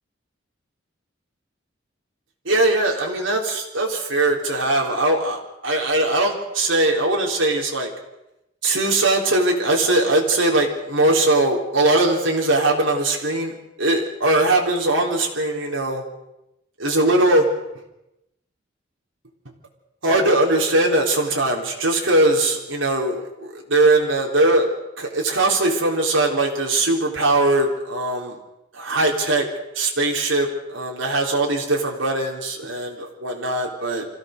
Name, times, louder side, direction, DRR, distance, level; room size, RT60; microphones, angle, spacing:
voice 1, 2.4-7.9 8.6-16.0 16.8-17.5 20.0-24.7 25.0-28.4 28.7-29.5 29.7-34.1, right 2 dB, 85° right, -1 dB, 3.8 m, -20 dB
25.5 x 15.5 x 6.7 m, 0.90 s
head